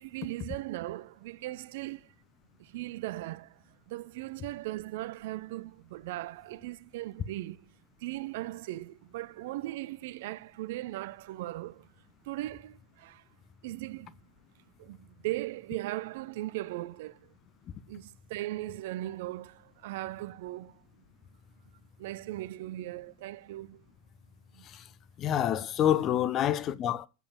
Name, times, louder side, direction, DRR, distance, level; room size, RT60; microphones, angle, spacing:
voice 1, 0.0-2.1 2.6-7.7 8.0-11.9 12.2-13.2 13.6-14.2 14.8-17.3 17.9-20.8 22.0-23.8 24.5-24.7, right 16 dB, 60° right, 0.6 m, -38 dB
voice 2, 25.2-27.1, left 10 dB, 35° left, 1.0 m, -27 dB
8.6 x 8.2 x 7.2 m
figure-of-eight pair, 85°, 0 cm